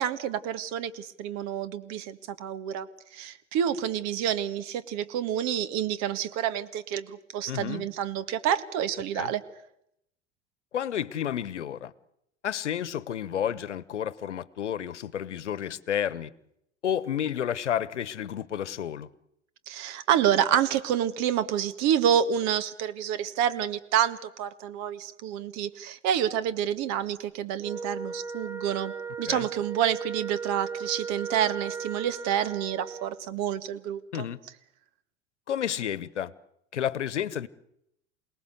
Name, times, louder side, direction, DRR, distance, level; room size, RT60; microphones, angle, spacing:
voice 1, 0.0-2.9 3.1-9.4 19.7-34.3, right 9 dB, 50° right, 1.9 m, -28 dB
voice 2, 7.5-7.9 9.1-9.3 10.7-11.9 12.4-16.3 16.8-19.1 29.3-29.5 34.1-34.4 35.5-36.3 36.7-37.5, left 9 dB, 80° left, 1.1 m, -31 dB
Wind instrument woodwind instrument, 27.6-33.2, right 5 dB, 10° right, 1.1 m, -36 dB
28.0 x 19.0 x 8.2 m
figure-of-eight pair, 80°, 35 cm